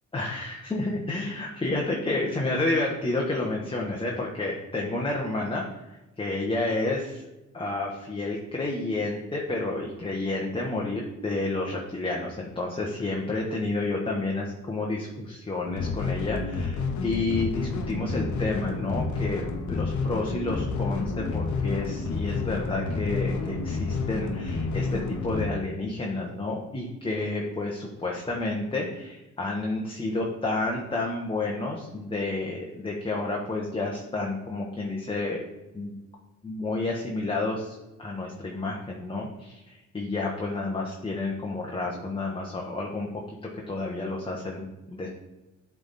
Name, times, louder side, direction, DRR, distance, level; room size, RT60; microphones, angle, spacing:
voice 1, 0.1-7.2 7.5-35.4 35.7-35.9 36.4-43.1 43.7-45.1, left 2 dB, 15° left, -2 dB, 1.1 m, -30 dB
sound 1, 15.6-25.5, left 4 dB, 70° left, 1.0 m, -30 dB
7.8 x 3.6 x 4.1 m, 1.0 s
cardioid pair, 90°, 30 cm